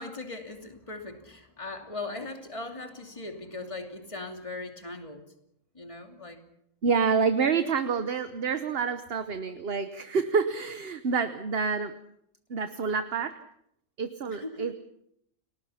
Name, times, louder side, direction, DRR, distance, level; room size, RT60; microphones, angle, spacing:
voice 1, 0.0-5.2 5.7-6.4 14.3-14.7, left 2 dB, 20° left, 4 dB, 2.8 m, -39 dB
voice 2, 6.8-11.9 12.5-13.4 14.0-14.9, right 5 dB, 45° right, 9 dB, 1.2 m, -28 dB
30.0 x 20.0 x 5.8 m, 0.74 s
omnidirectional pair, 1.5 m